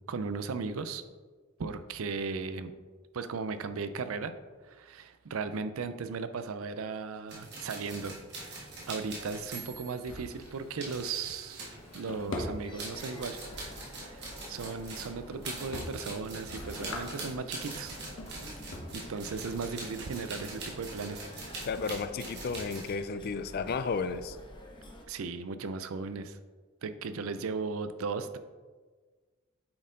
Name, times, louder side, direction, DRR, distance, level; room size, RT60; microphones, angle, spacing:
voice 1, 0.1-1.0 1.6-2.7 3.1-4.3 4.6-8.2 8.4-11.7 11.9-13.4 13.9-18.0 18.9-21.2 25.1-26.4 26.8-28.4, right 4 dB, 80° right, 11 dB, 0.5 m, -36 dB
sound 1, 7.3-12.4 12.8-22.9, right 2 dB, 55° right, 1.7 m, -43 dB
Drawer open or close, 7.9-23.1, left 1 dB, 75° left, 1.2 m, -45 dB
sound 2, 12.6-25.0, equal, 20° left, 0.8 m, -49 dB
voice 2, 21.7-24.4, left 4 dB, 45° left, 11 dB, 0.4 m, -33 dB
8.5 x 4.3 x 3.8 m, 1.4 s
head